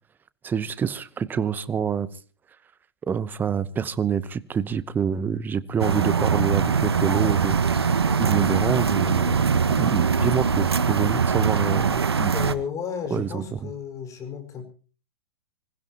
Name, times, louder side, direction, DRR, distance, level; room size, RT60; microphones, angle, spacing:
voice 1, 0.4-2.1 3.1-7.6 8.2-9.4 9.7-12.3 13.1-13.4, right 7 dB, 15° right, 16 dB, 0.9 m, -26 dB
sound 1, 5.8-12.5, right 6 dB, 85° right, 1.3 m, -22 dB
voice 2, 12.3-14.7, left 7 dB, 25° left, 7 dB, 5.1 m, -33 dB
25.5 x 16.0 x 2.9 m, 0.38 s
hypercardioid pair, 120°, 13 cm